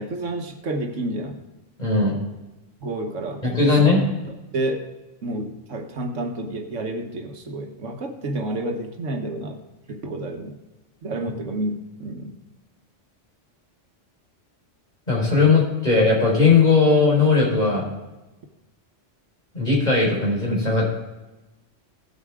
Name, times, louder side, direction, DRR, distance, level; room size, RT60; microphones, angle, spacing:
voice 1, 0.0-1.4 2.8-4.9 5.2-9.6 9.9-10.6 11.0-12.4, right 1 dB, 80° right, 5 dB, 1.5 m, -30 dB
voice 2, 1.8-2.2 3.4-4.0 15.1-17.9 19.5-20.9, left 4 dB, 35° left, -5 dB, 4.9 m, -18 dB
16.5 x 8.2 x 3.6 m, 1.1 s
omnidirectional pair, 1.3 m